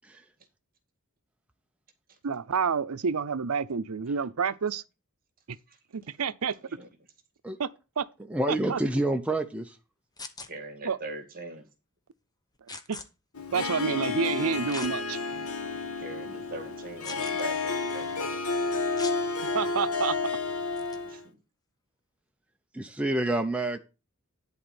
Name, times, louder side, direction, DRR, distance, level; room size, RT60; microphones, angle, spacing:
voice 1, 2.2-4.8 5.5-5.6 5.9-6.5 7.6-7.7 8.0-8.1 8.5-8.8 10.8-11.0 13.5-15.2 19.5-20.2, right 6 dB, 85° right, 0.6 m, -28 dB
voice 2, 6.4-6.9 10.5-11.7 15.9-18.4 21.1-21.4, right 2 dB, 45° right, 2.0 m, -42 dB
voice 3, 8.3-9.8 22.7-23.8, right 1 dB, 5° right, 0.7 m, -27 dB
sound 1, 10.2-10.5 12.7-13.1 14.7-14.9 15.5-15.6 17.0-17.4 19.0-19.2 20.8-21.0, left 3 dB, 20° left, 0.9 m, -40 dB
Harp, 13.3-21.2, left 4 dB, 85° left, 1.5 m, -31 dB
11.0 x 4.2 x 7.0 m
head